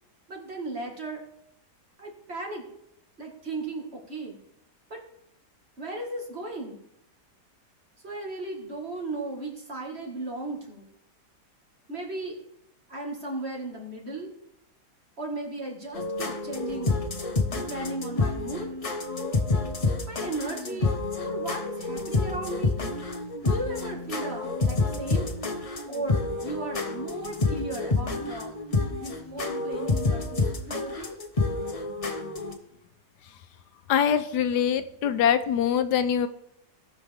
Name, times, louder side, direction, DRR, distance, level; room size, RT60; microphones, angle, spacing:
voice 1, 0.3-1.2 2.0-2.7 3.2-4.4 4.9-5.0 5.8-6.8 8.0-10.9 11.9-12.4 12.9-14.3 15.2-17.0 17.5-18.7 20.1-20.9 21.2-22.8 23.4-25.3 25.9-28.5 29.0-31.2, right 2 dB, 40° right, 0 dB, 2.2 m, -36 dB
sound 1, 15.9-32.5, left 3 dB, 30° left, 0.8 m, -28 dB
voice 2, 33.9-36.3, left 8 dB, 85° left, 11 dB, 1.3 m, -23 dB
18.5 x 6.3 x 3.5 m, 0.77 s
omnidirectional pair, 1.7 m